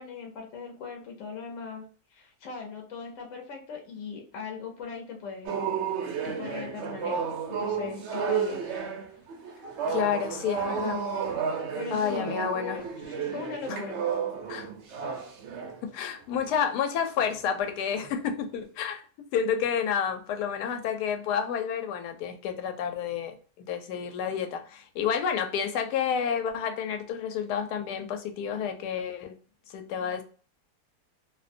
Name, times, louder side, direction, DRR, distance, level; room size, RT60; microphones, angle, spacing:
voice 1, 0.0-1.8 2.1-5.6 6.0-8.7 10.5-11.2 11.7-14.0, left 5 dB, 60° left, 0.9 m, -39 dB
sound 1, 5.5-15.8 16.4-16.6 17.2-17.5 17.9-18.2, right 6 dB, 70° right, 0.6 m, -32 dB
voice 2, 9.9-11.0 11.9-12.8 14.5-14.7 15.8-29.3 29.7-30.2, left 7 dB, 80° left, 1.1 m, -30 dB
2.7 x 2.1 x 2.5 m
omnidirectional pair, 1.7 m